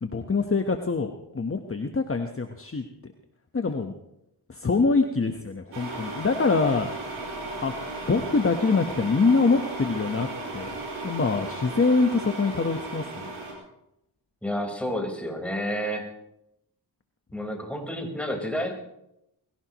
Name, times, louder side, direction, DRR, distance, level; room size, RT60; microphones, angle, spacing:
voice 1, 0.0-2.8 3.5-3.9 4.5-6.9 7.6-7.7 8.1-10.7 11.0-13.3, left 4 dB, 30° left, 5 dB, 1.3 m, -24 dB
sound 1, 5.7-13.5, right 2 dB, 85° right, 5.3 m, -35 dB
voice 2, 14.4-16.1 17.3-18.7, equal, 5° left, 0 dB, 4.6 m, -30 dB
21.5 x 16.5 x 3.1 m, 0.85 s
cardioid pair, 55°, 42 cm